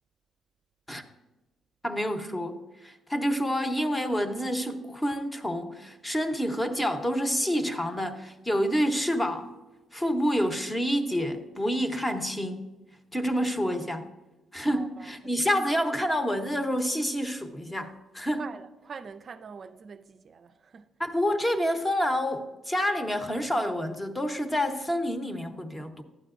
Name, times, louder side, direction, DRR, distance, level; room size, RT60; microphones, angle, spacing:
voice 1, 1.8-9.5 9.9-12.7 13.1-14.1 14.5-18.4 21.0-26.0, equal, 15° left, 0.8 m, -28 dB
voice 2, 14.6-15.3 18.4-20.9, right 5 dB, 50° right, 0.4 m, -44 dB
12.0 x 8.9 x 2.5 m
cardioid pair, 90°, 0 cm